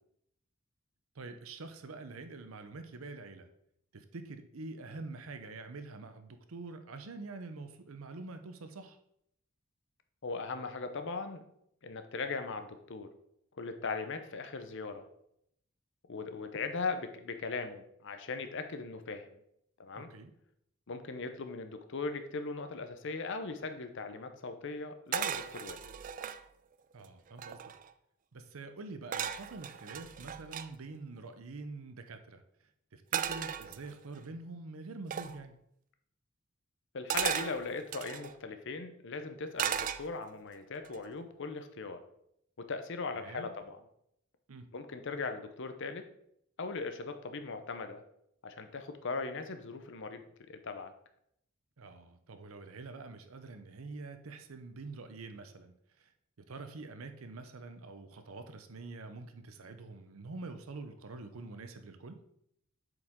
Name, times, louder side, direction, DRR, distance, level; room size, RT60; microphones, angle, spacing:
voice 1, 1.1-3.5 3.9-9.0 19.9-20.3 26.9-27.7 28.3-32.4 32.9-35.6 43.1-43.5 44.5-44.7 51.8-56.1 56.4-62.2, right 3 dB, 85° right, 8 dB, 0.7 m, -46 dB
voice 2, 10.2-11.5 11.8-13.1 13.6-15.1 16.1-19.3 19.8-20.1 20.9-25.8 36.9-42.0 42.6-43.8 44.7-46.1 46.6-48.0 48.4-50.9, left 4 dB, 60° left, 8 dB, 0.7 m, -39 dB
sound 1, 25.1-26.4 27.0-27.1 27.3-27.9 29.1-30.7 33.1-34.2 35.1-35.4 37.1-38.3 39.6-40.4 40.8-41.2, right 9 dB, 40° right, 0.3 m, -36 dB
7.8 x 4.9 x 3.7 m, 0.74 s
head